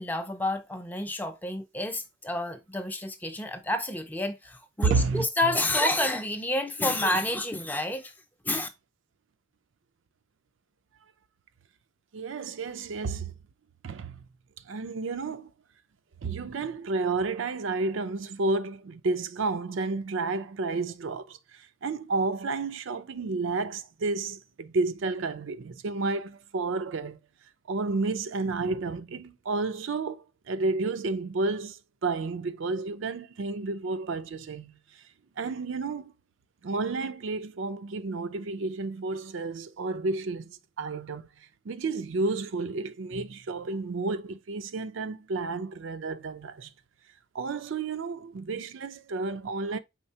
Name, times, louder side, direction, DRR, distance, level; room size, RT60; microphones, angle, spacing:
voice 1, 0.0-8.1 8.4-8.7, left 1 dB, 10° left, 0.4 m, -29 dB
voice 2, 4.8-5.2 12.1-13.3 13.8-14.2 14.6-15.5 16.2-27.2 27.7-35.1 35.4-36.1 36.6-46.7 47.3-49.8, right 3 dB, 70° right, 0.4 m, -31 dB
4.4 x 4.0 x 2.7 m
head